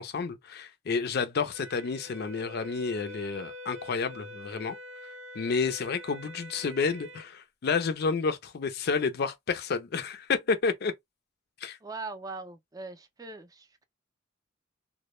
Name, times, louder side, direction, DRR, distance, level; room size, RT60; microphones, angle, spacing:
voice 1, 0.0-4.8 5.3-10.9 11.6-11.8, left 5 dB, 55° left, 0.4 m, -30 dB
Wind instrument woodwind instrument, 1.5-7.3, left 1 dB, 80° right, 0.6 m, -45 dB
voice 2, 11.8-13.8, right 3 dB, 20° right, 0.4 m, -41 dB
2.1 x 2.0 x 3.0 m
head